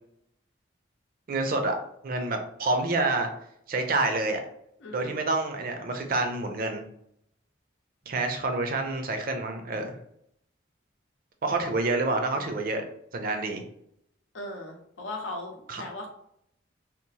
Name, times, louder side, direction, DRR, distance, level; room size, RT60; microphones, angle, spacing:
voice 1, 1.3-1.8 2.0-3.3 3.7-4.4 4.9-6.8 8.1-10.0 11.4-12.8 13.1-13.6 15.7-15.8, right 2 dB, 50° right, 5 dB, 0.4 m, -28 dB
voice 2, 4.8-5.2 14.3-16.1, left 1 dB, 85° left, 1 dB, 0.7 m, -38 dB
2.9 x 2.0 x 2.7 m, 0.72 s
head